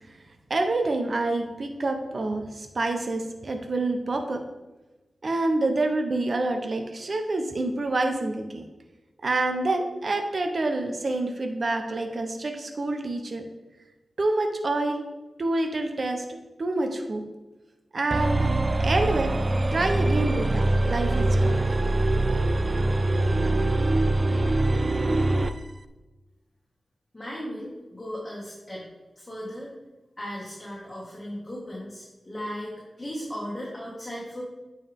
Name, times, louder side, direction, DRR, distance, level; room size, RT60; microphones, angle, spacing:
voice 1, 0.5-4.4 5.2-8.6 9.2-13.4 14.2-15.0 15.4-17.2 17.9-19.3 19.7-21.7, right 2 dB, 55° right, 5 dB, 0.8 m, -27 dB
sound 1, 18.1-25.6, right 2 dB, 40° right, 0.4 m, -23 dB
voice 2, 27.1-28.9 29.2-29.7 30.2-34.4, equal, 20° left, -5 dB, 1.9 m, -36 dB
8.9 x 4.7 x 3.6 m, 1.1 s
wide cardioid pair, 70°, 0 cm